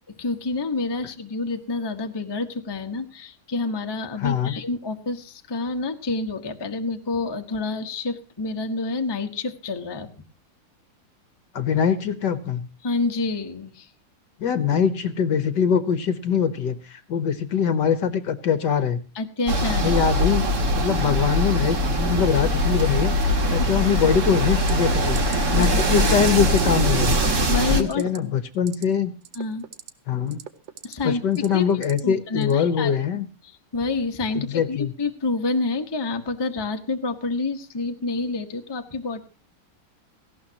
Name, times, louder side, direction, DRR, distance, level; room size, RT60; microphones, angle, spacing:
voice 1, 0.2-10.1 12.8-13.9 19.1-20.0 25.5-25.9 27.5-28.1 29.3-29.7 30.8-31.7 32.0-33.0 33.4-39.2, left 3 dB, 15° left, 5 dB, 0.9 m, -28 dB
voice 2, 4.2-4.6 11.5-12.7 14.4-19.0 19.8-20.4 20.7-27.2 27.7-29.1 30.1-30.4 31.0-33.2 34.3-34.9, left 7 dB, 60° left, 13 dB, 1.4 m, -23 dB
sound 1, 19.5-27.8, equal, 35° right, 1.8 m, -22 dB
sound 2, 24.7-24.9 25.2-25.4 25.6-25.8 26.1-26.3 26.6-26.7 27.9-28.2 28.5-28.8 29.2-29.9 30.3-30.9 31.3-32.0 32.4-32.6, right 9 dB, 65° right, 1.6 m, -37 dB
18.0 x 16.0 x 2.9 m, 0.32 s
omnidirectional pair, 2.4 m